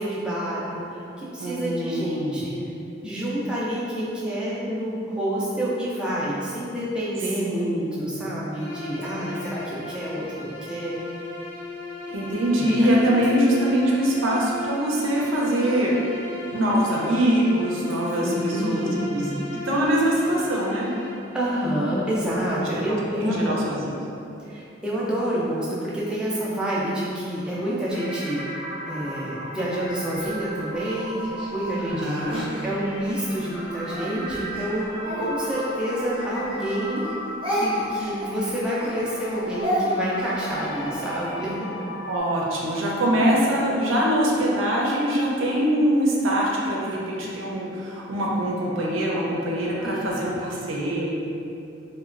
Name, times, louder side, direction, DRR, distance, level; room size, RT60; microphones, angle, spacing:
voice 1, 0.0-2.5 3.0-11.0 12.6-12.7 18.2-19.5 21.3-23.6 24.4-28.5 28.9-37.2 37.5-41.7 49.8-50.5, right 1 dB, 5° right, -8 dB, 0.3 m, -28 dB
voice 2, 1.4-2.4 7.4-8.1 9.3-9.4 12.1-15.9 16.5-19.2 19.7-20.9 22.9-23.8 31.8-32.4 42.1-51.2, equal, 85° right, -4 dB, 0.5 m, -23 dB
Bowed string instrument, 8.5-21.3, left 3 dB, 70° left, 0.5 m, -37 dB
sound 1, 27.9-42.2, equal, 90° left, 0.9 m, -37 dB
Speech, 30.2-33.3 33.9-36.7 36.9-41.4, equal, 25° right, 0.7 m, -32 dB
2.9 x 2.1 x 2.4 m, 2.7 s
head